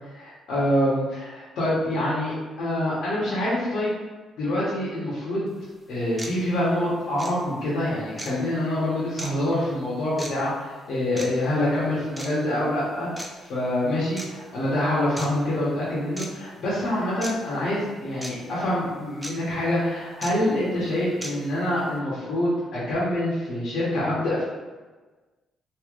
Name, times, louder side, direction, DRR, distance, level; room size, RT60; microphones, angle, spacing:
voice 1, 0.1-1.3 1.6-3.9 4.4-5.5 5.9-24.4, left 1 dB, 75° left, -8 dB, 1.0 m, -26 dB
sound 1, 5.5-5.6 6.2-6.3 7.2-7.3 8.2-8.3 9.2-9.3 10.2-10.3 11.2-11.3 12.2-12.3 13.2-13.3 14.2-14.3 15.2-15.3 16.2-16.3 17.2-17.3 18.2-18.3 19.2-19.3 20.2-20.3 21.2-21.3, right 1 dB, 10° right, 0.5 m, -35 dB
3.1 x 2.8 x 2.4 m, 1.3 s
cardioid pair, 90°, 0 cm